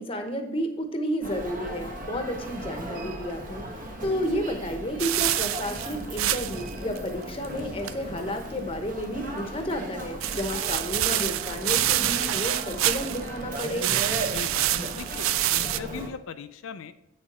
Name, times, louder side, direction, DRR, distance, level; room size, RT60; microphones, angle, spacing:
voice 1, 0.0-13.9, equal, 25° left, 5 dB, 0.9 m, -31 dB
Human voice, 1.2-16.1, right 1 dB, 40° right, 1.1 m, -37 dB
sound 1, 5.0-6.7 7.0-7.1 7.4-7.5 7.8-7.9 10.2-13.3 13.5-15.8, right 13 dB, 90° right, 0.4 m, -27 dB
voice 2, 14.3-16.9, left 5 dB, 85° left, 10 dB, 0.4 m, -40 dB
8.1 x 6.5 x 4.2 m, 0.86 s
head